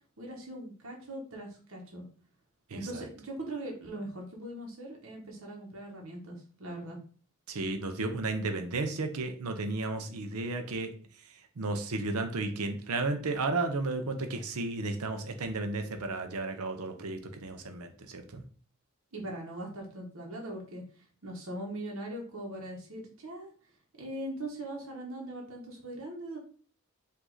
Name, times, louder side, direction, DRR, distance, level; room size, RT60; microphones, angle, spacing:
voice 1, 0.2-2.0 2.7-7.0 19.1-23.5 24.0-26.4, right 1 dB, 70° right, -1 dB, 1.1 m, -40 dB
voice 2, 7.5-10.9 11.6-18.4, right 3 dB, 85° right, 6 dB, 0.6 m, -33 dB
4.9 x 2.6 x 3.9 m, 0.42 s
head